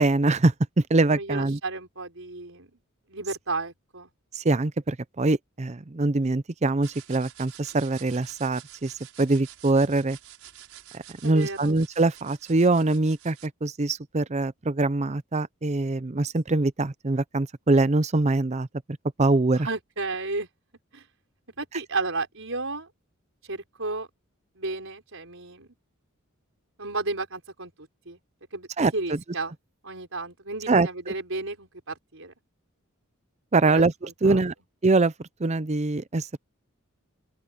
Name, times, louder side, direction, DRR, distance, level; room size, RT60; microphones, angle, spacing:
voice 1, 0.0-1.6 4.4-8.9 9.2-10.2 10.9-18.7 19.2-19.7 28.8-29.2 30.7-30.9 33.5-34.5 34.8-35.1 35.4-36.4, right 2 dB, 35° right, 0.6 m, -23 dB
voice 2, 1.1-2.7 3.1-4.1 11.2-11.8 19.5-20.5 20.9-21.1 21.6-22.9 23.5-24.1 24.6-25.7 26.8-28.2 28.5-29.5 29.8-32.3 33.6-34.4, right 3 dB, 65° right, 5.6 m, -33 dB
sound 1, 6.8-13.5, right 12 dB, 90° right, 5.9 m, -48 dB
open air
head